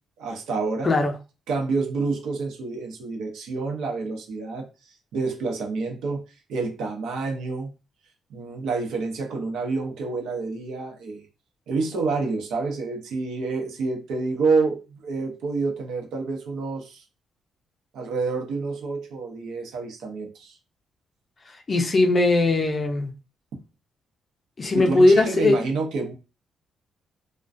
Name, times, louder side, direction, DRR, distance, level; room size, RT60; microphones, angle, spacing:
voice 1, 0.2-0.9 1.5-4.7 5.1-6.2 6.5-7.7 8.3-11.3 11.7-17.0 17.9-20.6 24.7-26.1, right 4 dB, 85° right, 1 dB, 0.6 m, -28 dB
voice 2, 21.7-23.1 24.6-25.6, left 2 dB, 35° left, 4 dB, 0.5 m, -19 dB
2.3 x 2.2 x 2.5 m, 0.31 s
cardioid pair, 100°, 0 cm